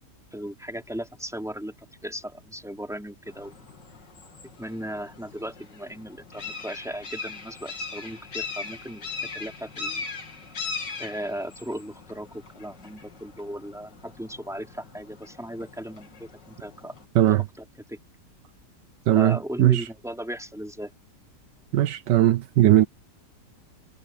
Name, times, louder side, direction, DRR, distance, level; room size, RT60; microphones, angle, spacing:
voice 1, 0.3-1.7 2.0-3.5 4.6-9.1 9.3-10.0 11.0-16.9 17.9-18.0 19.1-20.9, equal, ahead, 3.6 m, -36 dB
sound 1, 3.3-17.1, left 4 dB, 80° left, 3.6 m, -40 dB
voice 2, 17.1-17.4 19.1-19.9 21.7-22.9, right 13 dB, 80° right, 1.4 m, -19 dB
omnidirectional pair, 1.9 m